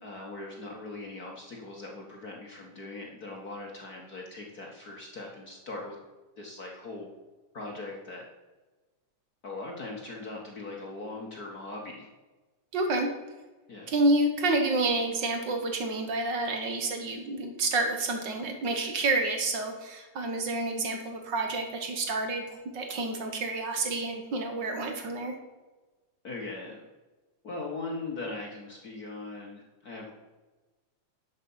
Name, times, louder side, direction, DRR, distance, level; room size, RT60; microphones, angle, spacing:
voice 1, 0.0-6.0 6.4-7.1 7.5-8.2 9.4-12.1 13.7-13.9 26.2-26.8 27.4-30.1, left 2 dB, 50° left, -1 dB, 1.2 m, -40 dB
voice 2, 12.7-13.1 13.9-25.4, right 2 dB, 55° right, 4 dB, 1.3 m, -29 dB
11.0 x 7.2 x 5.5 m, 1.2 s
omnidirectional pair, 3.5 m